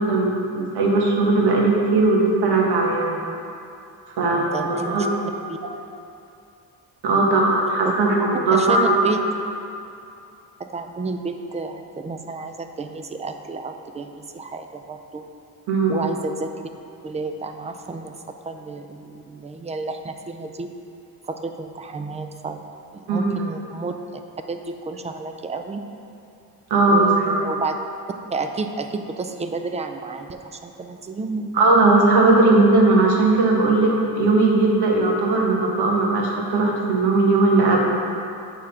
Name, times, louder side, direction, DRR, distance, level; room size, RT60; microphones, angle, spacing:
voice 1, 0.0-3.2 4.2-5.1 7.0-8.9 15.7-16.0 23.1-23.3 26.7-27.3 31.5-37.9, right 2 dB, 85° right, -2 dB, 1.3 m, -18 dB
voice 2, 4.2-5.1 5.5-5.6 7.8-7.9 8.5-9.2 10.6-15.2 15.9-16.5 17.0-18.2 18.5-20.7 21.3-22.6 22.9-24.2 24.5-25.8 26.9-27.8 28.3-31.8, right 3 dB, 20° right, 6 dB, 0.3 m, -31 dB
8.6 x 3.6 x 5.7 m, 2.6 s
cardioid pair, 130°, 39 cm